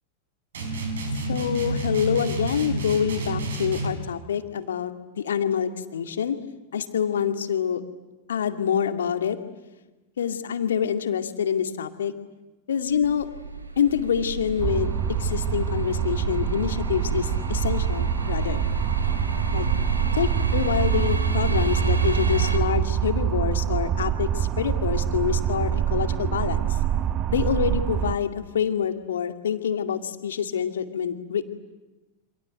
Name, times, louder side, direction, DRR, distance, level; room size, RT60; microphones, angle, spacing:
sound 1, 0.5-4.0, right 1 dB, 60° right, 6.0 m, -29 dB
voice 1, 1.3-6.4 6.7-7.8 8.3-9.4 10.2-12.1 12.7-13.3 13.8-18.6 19.5-19.7 20.1-26.7 27.3-31.4, left 8 dB, 65° left, 8 dB, 2.2 m, -26 dB
sound 2, 12.9-22.6, right 3 dB, 80° right, 3.6 m, -30 dB
sound 3, 14.6-28.1, right 10 dB, 30° right, 1.2 m, -25 dB
27.5 x 26.5 x 8.0 m, 1.1 s
figure-of-eight pair, 90°, 0 cm